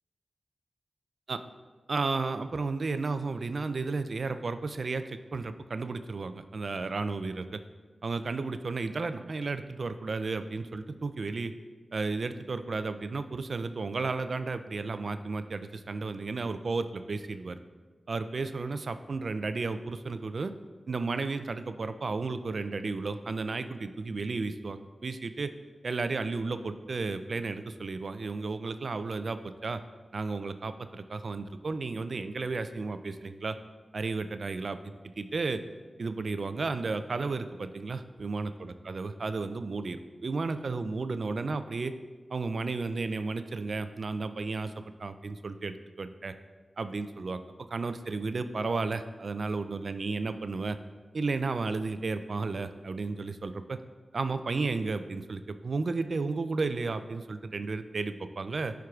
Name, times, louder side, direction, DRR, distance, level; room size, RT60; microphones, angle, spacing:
voice 1, 1.9-7.6 8.0-11.5 11.9-17.6 18.1-20.5 20.9-25.5 25.8-29.8 30.1-33.6 33.9-35.6 36.0-41.9 42.3-44.7 45.0-46.3 46.8-47.4 47.7-50.8 51.1-53.8 54.1-58.7, right 3 dB, 65° right, 10 dB, 0.3 m, -33 dB
11.0 x 4.6 x 2.4 m, 1.4 s
cardioid pair, 50°, 0 cm